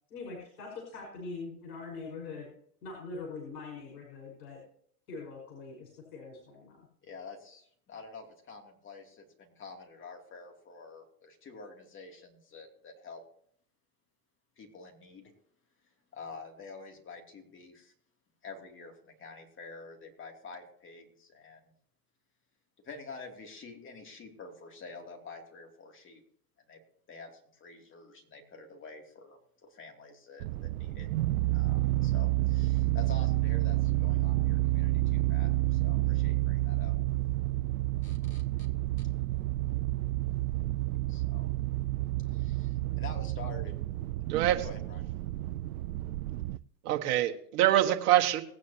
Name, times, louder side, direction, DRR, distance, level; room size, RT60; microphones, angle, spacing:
voice 1, 0.1-2.5 2.8-4.6 5.1-6.9, left 4 dB, 70° left, -1 dB, 5.4 m, -43 dB
voice 2, 7.0-13.2 14.6-15.3 16.1-17.9 18.4-21.7 22.8-26.2 26.7-26.8 27.1-31.1 31.5-36.9 38.0-38.7 39.0-39.1 41.1-41.5 42.3-43.7 44.4-45.0, left 4 dB, 25° left, 3 dB, 2.9 m, -48 dB
sound 1, 30.4-46.6, right 18 dB, 70° right, 0.6 m, -29 dB
voice 3, 46.8-48.4, right 13 dB, 50° right, 3 dB, 1.6 m, -25 dB
19.5 x 9.5 x 2.9 m, 0.64 s
hypercardioid pair, 105°, 45 cm